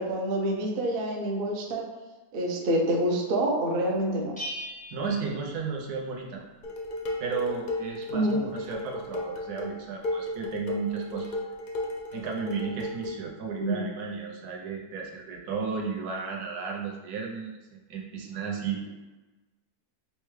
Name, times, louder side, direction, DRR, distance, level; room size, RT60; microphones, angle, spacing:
voice 1, 0.0-2.0 2.3-4.4 8.1-8.4 13.6-13.8, right 1 dB, 55° right, 0 dB, 0.6 m, -27 dB
Bell, 4.4-6.2, equal, 10° left, 0.5 m, -40 dB
voice 2, 4.9-6.4 7.2-11.3 12.1-18.9, right 5 dB, 75° right, 0 dB, 1.2 m, -34 dB
Dishes pots and pans, 6.6-13.2, left 1 dB, 65° left, 0.5 m, -34 dB
5.6 x 2.2 x 3.1 m, 1.2 s
omnidirectional pair, 1.7 m